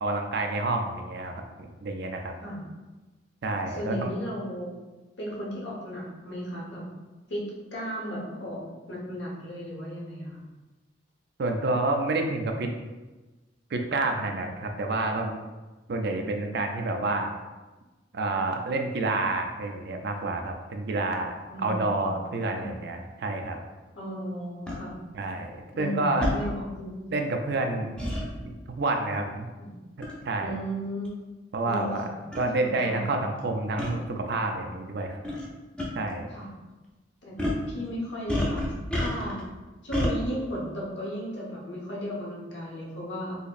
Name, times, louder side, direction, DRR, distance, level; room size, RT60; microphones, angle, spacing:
voice 1, 0.0-2.3 3.4-4.1 11.4-12.7 13.7-15.3 15.9-17.3 18.1-21.3 21.6-23.6 25.1-25.5 25.8-26.3 27.1-28.0 28.4-29.5 30.2-30.5 31.5-32.1 32.4-35.2 36.0-36.3, right 2 dB, 60° right, 4 dB, 0.4 m, -28 dB
voice 2, 3.7-4.7 5.2-6.8 7.3-8.6 8.9-10.4 21.5-22.1 22.5-22.7 23.9-24.9 25.7-27.1 29.6-29.7 30.4-31.2 31.6-32.4 32.8-33.1 36.3-36.5 37.2-37.3 37.7-39.4 39.8-43.4, equal, 70° left, -4 dB, 1.1 m, -35 dB
sound 1, 24.7-24.8 26.2-26.4 28.0-28.2 30.0-30.2 31.0-31.1 32.0-32.1 32.3-32.5 33.8-33.9 35.2-35.5 35.8-35.9 37.4-37.6 38.3-39.4 39.9-40.1, left 1 dB, 5° left, 0.6 m, -28 dB
4.0 x 3.0 x 2.5 m, 1.2 s
head